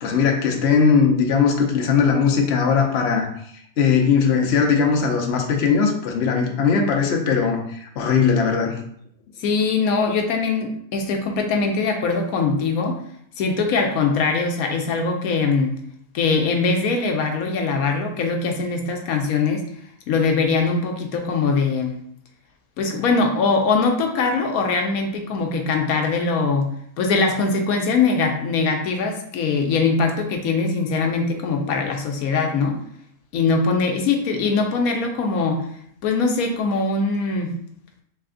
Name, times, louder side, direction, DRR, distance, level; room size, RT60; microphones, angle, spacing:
voice 1, 0.0-3.3 3.8-8.8, left 6 dB, 55° left, 2 dB, 0.8 m, -19 dB
voice 2, 9.4-13.0 13.4-15.8 16.1-19.6 20.1-22.0 22.8-26.7 27.0-32.8 33.3-35.6 36.0-37.5, left 4 dB, 75° left, 3 dB, 1.1 m, -22 dB
3.3 x 3.3 x 3.7 m, 0.66 s
omnidirectional pair, 1.5 m